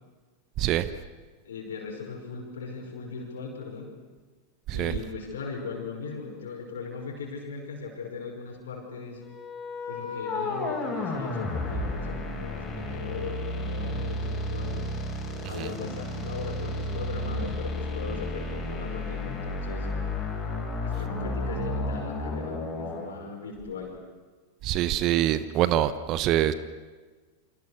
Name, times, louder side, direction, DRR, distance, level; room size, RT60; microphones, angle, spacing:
voice 1, 1.4-3.9 4.7-9.2 9.9-14.8 15.4-19.9 20.8-23.9, left 5 dB, 65° left, 1 dB, 5.6 m, -38 dB
sound 1, 9.2-23.1, left 2 dB, 25° left, 7.3 m, -32 dB
voice 2, 24.6-26.5, right 12 dB, 35° right, 14 dB, 1.1 m, -24 dB
29.0 x 26.0 x 6.6 m, 1.4 s
figure-of-eight pair, 90°, 0 cm